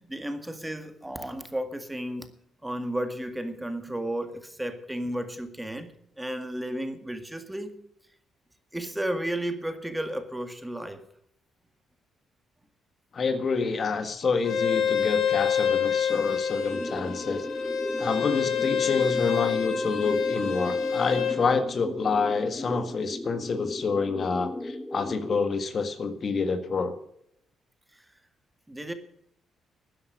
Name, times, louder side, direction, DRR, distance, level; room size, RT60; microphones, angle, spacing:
voice 1, 0.0-2.3 2.6-7.8 8.7-11.1 27.9-28.0 28.7-28.9, right 1 dB, 10° right, 1.9 m, -33 dB
voice 2, 13.1-17.5 18.0-27.0, left 4 dB, 45° left, 1.6 m, -28 dB
Bowed string instrument, 14.4-21.4, left 7 dB, 70° left, 2.4 m, -27 dB
sound 1, 16.7-25.4, left 1 dB, 10° left, 1.0 m, -37 dB
13.0 x 10.0 x 6.4 m
cardioid pair, 90°, 0 cm